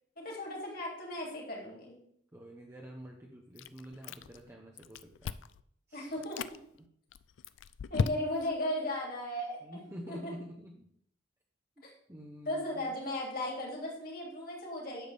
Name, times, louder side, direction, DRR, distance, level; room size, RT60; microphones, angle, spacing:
voice 1, 0.2-2.0 5.9-6.4 7.9-9.8 10.1-10.3 11.8-11.9 12.4-15.1, left 1 dB, 50° left, -2 dB, 2.8 m, -36 dB
voice 2, 2.3-5.3 5.9-6.1 9.6-10.9 11.8-12.9, equal, 15° right, -1 dB, 0.8 m, -47 dB
Chewing mastication, 3.6-4.5 4.8-5.6 6.1-6.6 7.1-8.6, left 5 dB, 85° left, 0.4 m, -36 dB
10.5 x 7.0 x 3.5 m, 0.69 s
head